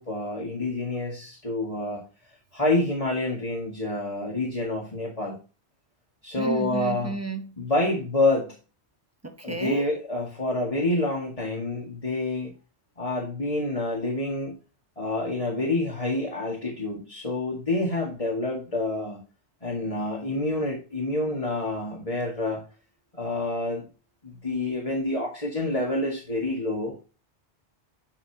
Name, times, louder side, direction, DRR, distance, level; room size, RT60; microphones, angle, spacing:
voice 1, 0.0-2.0 2.5-5.4 6.2-7.2 7.6-8.6 9.4-12.5 13.0-14.6 15.0-19.2 19.6-22.6 23.2-23.9 24.2-27.0, left 2 dB, 30° left, 2.2 m, -28 dB
voice 2, 6.4-7.5 9.2-9.8, right 2 dB, 15° right, 1.1 m, -32 dB
9.9 x 5.6 x 2.9 m
omnidirectional pair, 1.1 m